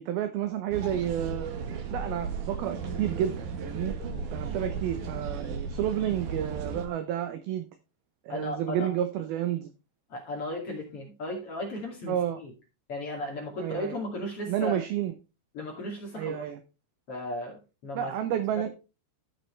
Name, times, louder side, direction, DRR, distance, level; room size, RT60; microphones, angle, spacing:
voice 1, 0.0-1.5 1.9-4.0 4.3-7.7 8.3-9.7 12.1-12.4 13.6-14.0 14.5-15.1 16.2-16.6 17.9-18.7, right 11 dB, 85° right, 9 dB, 2.1 m, -30 dB
sound 1, 0.7-6.9, right 5 dB, 65° right, 2.0 m, -35 dB
voice 2, 8.3-8.9 10.1-12.5 12.9-14.8 15.5-16.5 17.1-18.1 18.5-18.7, left 1 dB, 40° left, -1 dB, 2.6 m, -36 dB
15.0 x 6.1 x 3.2 m, 0.30 s
omnidirectional pair, 5.3 m